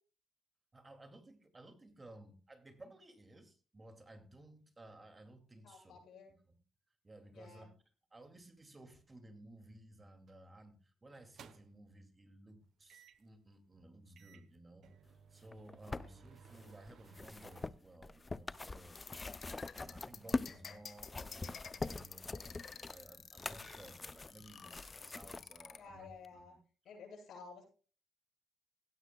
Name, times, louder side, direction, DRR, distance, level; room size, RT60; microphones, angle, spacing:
voice 1, 0.7-6.6 7.0-7.7 8.1-14.9 15.3-19.2 19.8-26.6, right 1 dB, 25° right, 6 dB, 2.3 m, -57 dB
voice 2, 5.6-6.4 7.3-7.7 15.8-16.1 25.7-26.5 26.8-27.6, left 5 dB, 70° left, 1 dB, 7.4 m, -53 dB
sound 1, 10.3-10.5 11.1-11.9 12.9-13.3 13.8-13.9 14.2-17.7, right 7 dB, 65° right, 0.9 m, -60 dB
sound 2, 15.4-20.6 20.9-25.4 26.2-26.3, left 3 dB, 20° left, 0.4 m, -43 dB
sound 3, 19.0-25.8, left 6 dB, 50° left, 1.3 m, -51 dB
16.5 x 12.5 x 2.3 m, 0.38 s
cardioid pair, 90°, 0 cm